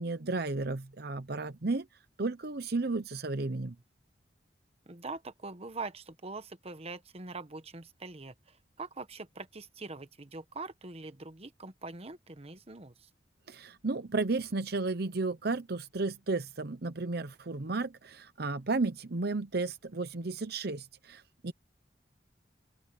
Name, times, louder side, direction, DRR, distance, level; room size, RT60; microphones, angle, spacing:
voice 1, 0.0-1.9 2.2-3.8 13.5-21.5, right 3 dB, 60° right, 0.9 m, -33 dB
voice 2, 4.9-13.1, right 3 dB, 35° right, 1.2 m, -43 dB
head